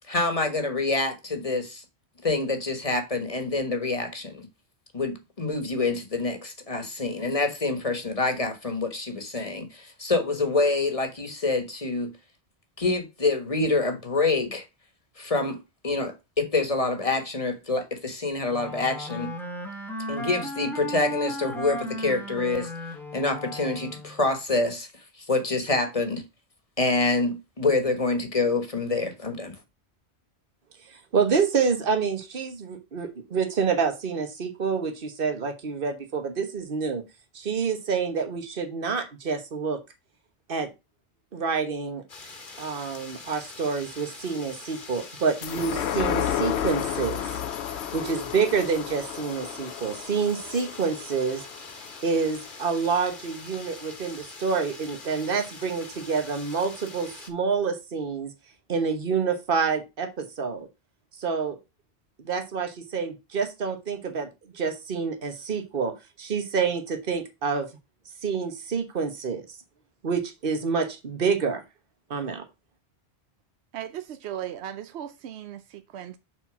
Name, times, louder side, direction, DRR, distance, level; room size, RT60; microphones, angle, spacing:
voice 1, 0.1-1.8 2.2-4.5 4.9-12.1 12.8-14.6 15.2-19.3 20.1-22.7 23.1-24.9 25.2-26.2 26.8-29.6, left 3 dB, 35° left, 1.4 m, -26 dB
Wind instrument woodwind instrument, 18.5-24.2, equal, ahead, 1.3 m, -35 dB
voice 2, 30.9-37.0 37.3-39.8 40.5-40.7 41.3-42.0 42.6-47.4 47.9-51.5 52.0-58.3 58.7-60.7 61.2-61.6 62.2-64.3 64.5-67.7 68.2-69.4 70.0-71.6 72.1-72.4, right 5 dB, 55° right, 1.4 m, -27 dB
sound 1, 42.1-57.3, left 3 dB, 50° left, 1.5 m, -44 dB
sound 2, 45.4-52.2 52.6-52.7, left 10 dB, 85° left, 0.9 m, -32 dB
voice 3, 73.7-76.2, right 10 dB, 80° right, 0.9 m, -37 dB
6.6 x 4.4 x 6.0 m
omnidirectional pair, 1.1 m